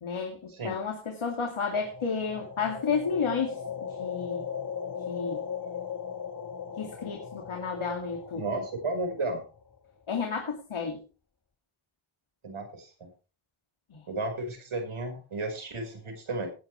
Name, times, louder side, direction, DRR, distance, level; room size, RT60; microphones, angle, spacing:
voice 1, 0.0-3.6 4.0-4.5 5.1-5.4 6.8-8.4 10.1-11.0 13.9-14.0, left 5 dB, 80° left, 2 dB, 2.5 m, -31 dB
sound 1, 1.7-9.8, left 7 dB, 40° left, 1.6 m, -38 dB
voice 2, 8.4-9.4 12.4-13.1 14.1-16.5, right 2 dB, 90° right, 4 dB, 5.1 m, -33 dB
19.0 x 9.7 x 3.3 m, 0.33 s
wide cardioid pair, 75°, 48 cm